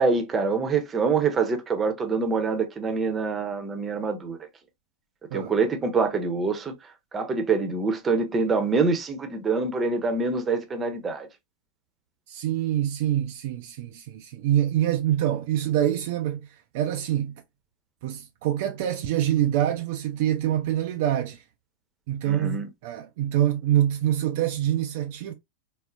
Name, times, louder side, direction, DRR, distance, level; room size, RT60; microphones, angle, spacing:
voice 1, 0.0-4.4 5.3-6.7 7.1-11.3 22.3-22.7, right 4 dB, 20° right, 0.7 m, -25 dB
voice 2, 12.3-17.4 18.0-21.4 22.1-25.3, right 11 dB, 50° right, 0.3 m, -25 dB
3.7 x 2.0 x 2.4 m
figure-of-eight pair, 90°, 0 cm